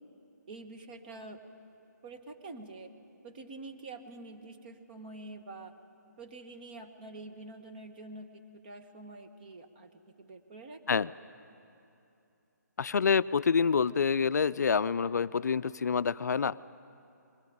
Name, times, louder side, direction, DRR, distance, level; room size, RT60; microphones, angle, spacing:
voice 1, 0.5-1.4 2.0-2.9 3.2-5.7 6.2-9.9 10.2-11.1, right 2 dB, 30° right, 5 dB, 1.3 m, -46 dB
voice 2, 12.8-16.6, left 6 dB, 65° left, 16 dB, 0.4 m, -27 dB
22.0 x 16.0 x 8.6 m, 2.7 s
hypercardioid pair, 160°, 10 cm